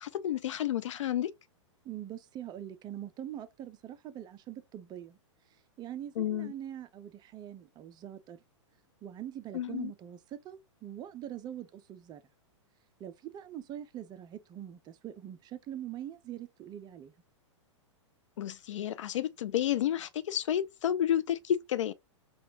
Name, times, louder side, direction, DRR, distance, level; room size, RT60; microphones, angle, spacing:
voice 1, 0.0-1.3 6.2-6.5 9.5-9.9 18.4-21.9, left 11 dB, 75° left, 0.4 m, -31 dB
voice 2, 1.8-5.2 5.8-8.4 9.0-12.2 13.0-17.1, right 11 dB, 25° right, 0.5 m, -43 dB
4.2 x 2.3 x 2.7 m
hypercardioid pair, 110°, 16 cm